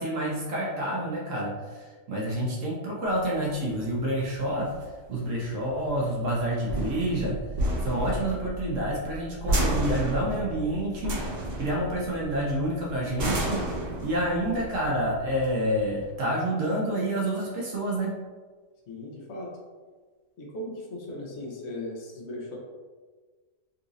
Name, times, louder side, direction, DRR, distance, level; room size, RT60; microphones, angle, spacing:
voice 1, 0.0-4.7 5.1-7.4 7.8-11.2 11.6-13.6 14.0-18.1, right 1 dB, 75° right, -4 dB, 1.1 m, -28 dB
sound 1, 3.1-16.1, right 1 dB, 55° right, 1.0 m, -32 dB
voice 2, 18.9-19.5 20.4-22.6, left 1 dB, 60° left, -2 dB, 1.0 m, -37 dB
3.9 x 2.6 x 2.4 m, 1.4 s
omnidirectional pair, 1.4 m